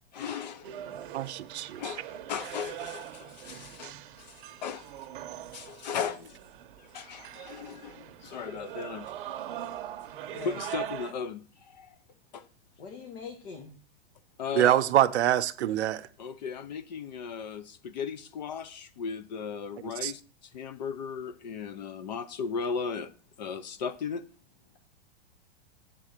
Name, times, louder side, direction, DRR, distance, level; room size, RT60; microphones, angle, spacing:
voice 1, 0.1-0.9 1.8-4.9 5.5-6.4 6.8-9.1 10.4-11.9 12.3-12.4 14.4-14.8 16.2-20.2 20.5-23.1 23.4-24.3, left 6 dB, 45° left, 0.4 m, -36 dB
sound 1, 0.6-11.1, right 11 dB, 55° right, 0.7 m, -42 dB
voice 2, 1.1-1.9 14.5-16.1 20.0-20.1, right 12 dB, 85° right, 0.7 m, -25 dB
voice 3, 12.8-13.8, left 5 dB, 80° left, 1.6 m, -42 dB
8.5 x 3.7 x 6.6 m
supercardioid pair, 170°, 32 cm